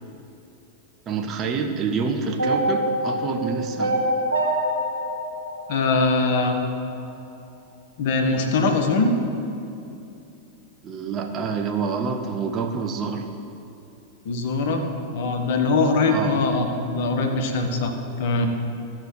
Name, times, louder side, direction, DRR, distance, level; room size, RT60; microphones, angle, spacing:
voice 1, 1.1-4.0 10.8-13.3 16.0-16.4, right 5 dB, 30° right, 4 dB, 0.9 m, -27 dB
sound 1, 2.4-6.6, right 1 dB, 75° right, 1.7 m, -25 dB
voice 2, 5.7-6.6 8.0-9.1 14.2-14.8 15.1-18.5, left 3 dB, 55° left, 4 dB, 1.2 m, -22 dB
14.0 x 4.9 x 7.6 m, 2.7 s
figure-of-eight pair, 90°, 0 cm